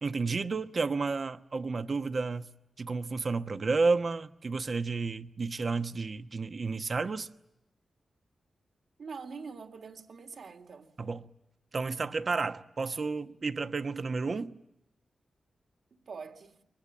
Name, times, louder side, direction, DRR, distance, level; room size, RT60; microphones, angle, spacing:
voice 1, 0.0-2.5 2.8-7.3 11.0-11.2 11.7-14.6, right 4 dB, 50° right, 1.1 m, -31 dB
voice 2, 9.0-10.9 15.9-16.6, right 5 dB, 75° right, 3.1 m, -44 dB
29.5 x 23.0 x 8.8 m
cardioid pair, 80°, 0 cm